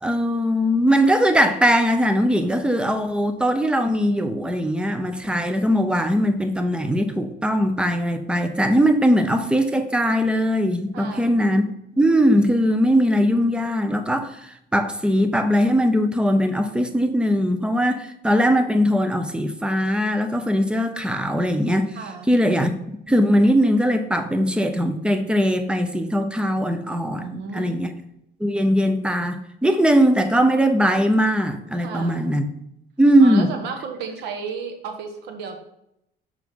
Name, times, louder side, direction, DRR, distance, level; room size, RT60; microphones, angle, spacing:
voice 1, 0.0-11.6 12.0-22.0 22.3-22.7 23.1-27.9 28.4-32.5 33.0-33.5, equal, 5° right, 8 dB, 0.6 m, -20 dB
voice 2, 10.9-11.5 21.9-22.4 27.2-27.9 31.8-32.4 33.2-35.6, right 5 dB, 85° right, 5 dB, 1.1 m, -34 dB
5.8 x 4.8 x 3.7 m, 0.78 s
cardioid pair, 110°, 17 cm